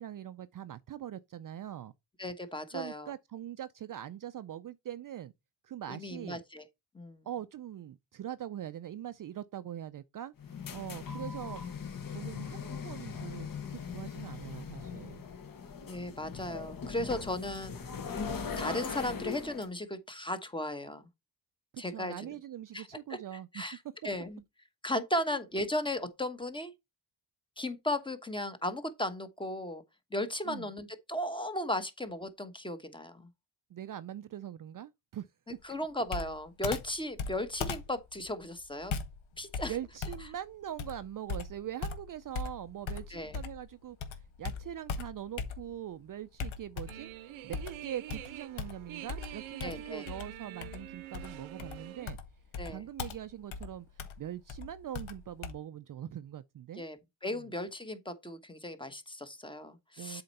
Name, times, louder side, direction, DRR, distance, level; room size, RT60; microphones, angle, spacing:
voice 1, 0.0-1.9 2.7-5.3 5.6-6.4 7.2-15.2 21.7-23.6 25.3-25.4 30.4-30.7 33.7-35.3 35.7-35.8 39.7-47.1 47.4-52.2 52.7-56.8 57.3-57.5 60.0-60.2, right 11 dB, 45° right, 0.5 m, -42 dB
voice 2, 2.2-3.1 5.9-6.6 6.9-7.2 11.1-11.3 15.8-17.8 18.6-21.1 21.8-22.3 22.7-23.2 23.5-23.8 24.0-24.4 24.8-26.7 27.6-29.8 30.1-33.3 35.6-38.9 39.4-39.8 43.1-43.4 49.6-50.1 52.6-52.8 56.8-60.2, left 1 dB, 10° left, 1.1 m, -36 dB
sound 1, 10.4-19.7, left 6 dB, 45° left, 1.4 m, -40 dB
Computer keyboard, 36.1-43.7 44.0-45.9 46.4-47.1 47.5-55.5, left 5 dB, 80° left, 1.4 m, -40 dB
sound 2, 46.9-52.1, right 12 dB, 90° right, 0.9 m, -46 dB
7.7 x 4.4 x 4.1 m
cardioid pair, 105°, 47 cm